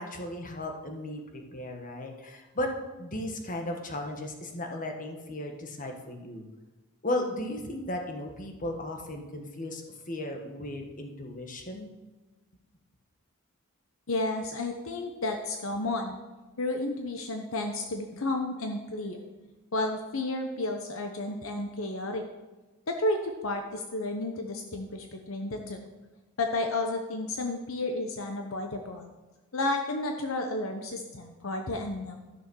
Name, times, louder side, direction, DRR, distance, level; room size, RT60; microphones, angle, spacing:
voice 1, 0.0-2.7 3.0-6.5 7.0-9.8 10.1-11.9, left 1 dB, 40° left, 3 dB, 1.5 m, -35 dB
voice 2, 14.1-16.2 16.6-19.2 19.7-22.3 22.9-25.8 26.4-29.1 29.5-32.2, left 2 dB, 65° left, 4 dB, 0.9 m, -32 dB
12.5 x 6.2 x 6.4 m, 1.2 s
head